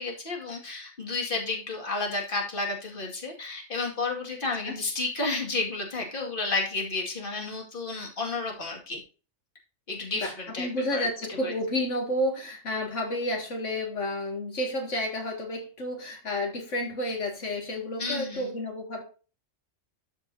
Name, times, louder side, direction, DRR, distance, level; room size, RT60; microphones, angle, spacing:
voice 1, 0.0-9.0 9.9-11.1 11.4-11.5 18.0-18.5, left 3 dB, 45° left, 0 dB, 2.3 m, -31 dB
voice 2, 10.2-19.0, left 1 dB, 90° left, 1 dB, 2.3 m, -31 dB
13.0 x 5.3 x 2.7 m, 0.35 s
omnidirectional pair, 1.2 m